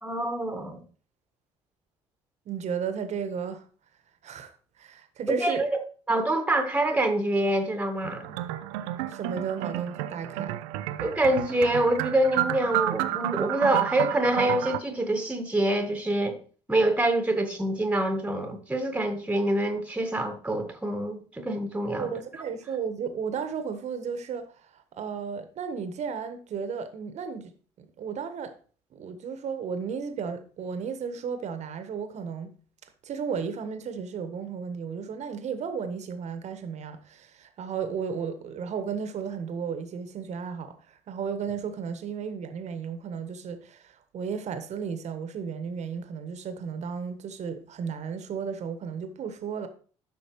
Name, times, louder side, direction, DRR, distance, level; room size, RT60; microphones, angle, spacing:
voice 1, 0.0-0.8 5.3-5.8 6.1-8.4 11.0-16.4 16.7-22.1, right 1 dB, 10° right, 1.6 m, -26 dB
voice 2, 2.4-3.6 4.2-5.6 9.1-10.6 22.0-24.5 24.7-27.5 27.8-28.5 28.9-32.5 33.0-49.7, right 6 dB, 50° right, 1.4 m, -34 dB
sound 1, 8.0-14.8, right 14 dB, 65° right, 0.5 m, -31 dB
12.0 x 6.1 x 3.1 m
figure-of-eight pair, 50°, 15 cm